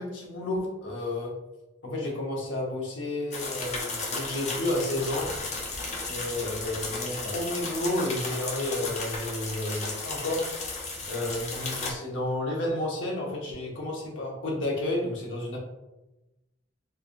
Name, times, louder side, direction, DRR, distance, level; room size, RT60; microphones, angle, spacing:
voice 1, 0.0-1.3 1.8-5.3 6.1-10.5 11.1-15.6, left 1 dB, 80° left, -2 dB, 0.9 m, -31 dB
sound 1, 3.3-11.9, left 3 dB, 35° left, 0.6 m, -34 dB
3.3 x 2.5 x 2.5 m, 0.99 s
head